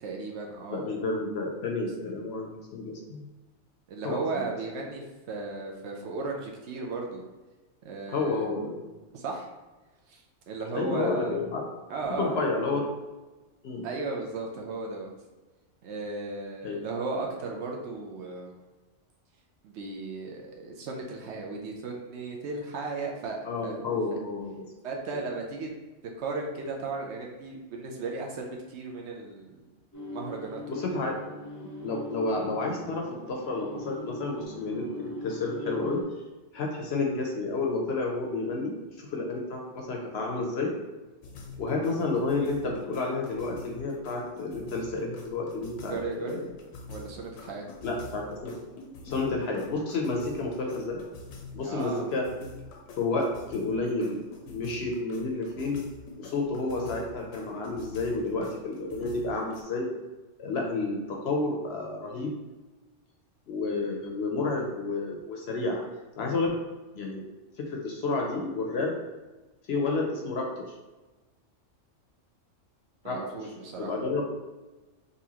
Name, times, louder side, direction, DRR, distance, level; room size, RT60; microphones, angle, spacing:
voice 1, 0.0-1.0 3.9-7.2 7.8-8.4 9.1-9.5 10.1-11.4 11.9-12.5 13.8-15.1 15.8-18.5 19.6-23.8 24.1-24.2 24.8-25.7 26.2-29.6 30.0-30.9 45.9-46.5 46.9-47.7 51.6-52.1 73.0-73.9, right 3 dB, 65° right, 1 dB, 0.8 m, -35 dB
voice 2, 0.7-3.2 4.0-4.5 8.1-8.9 10.7-11.6 12.2-12.8 13.6-13.9 16.6-16.8 23.4-24.5 25.1-25.2 30.7-31.2 31.8-36.0 36.5-40.7 41.6-46.5 47.8-48.5 49.0-51.0 51.5-52.2 53.0-54.2 54.5-55.8 56.2-59.9 60.4-62.3 63.5-65.8 66.2-66.6 66.9-67.2 67.6-68.9 69.7-70.6 73.0-73.2 73.8-74.3, left 3 dB, 65° left, 0 dB, 0.7 m, -30 dB
sound 1, 29.9-36.0, left 1 dB, 25° left, 0.4 m, -41 dB
sound 2, 41.2-59.6, left 3 dB, 90° left, 1.0 m, -46 dB
4.0 x 2.5 x 2.8 m, 1.2 s
omnidirectional pair, 1.3 m